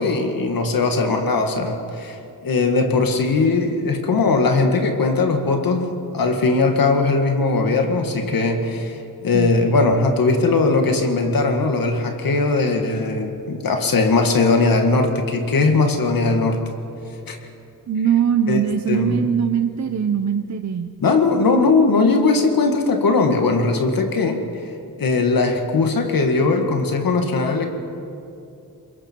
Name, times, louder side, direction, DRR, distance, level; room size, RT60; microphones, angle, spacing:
voice 1, 0.0-9.0 9.2-16.6 17.3-17.4 18.5-18.6 18.9-19.2 21.0-24.4 25.0-27.7, left 3 dB, 70° left, 4 dB, 1.9 m, -19 dB
voice 2, 17.9-20.9, right 8 dB, 50° right, 7 dB, 0.7 m, -21 dB
27.0 x 22.5 x 4.5 m, 2.6 s
wide cardioid pair, 160°, 35 cm